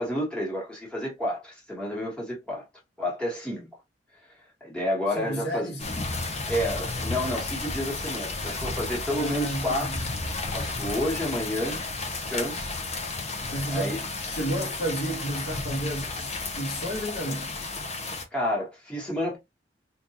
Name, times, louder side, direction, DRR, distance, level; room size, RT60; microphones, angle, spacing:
voice 1, 0.0-2.6 3.0-3.7 4.6-5.7 6.5-11.8 12.1-12.8 13.7-14.0 18.3-19.4, left 1 dB, 5° left, 1.5 m, -30 dB
voice 2, 5.1-5.9 9.1-10.0 13.5-17.5, right 1 dB, 70° left, 1.3 m, -32 dB
sound 1, 5.8-18.2, left 3 dB, 40° left, 0.8 m, -33 dB
3.6 x 2.6 x 2.9 m
head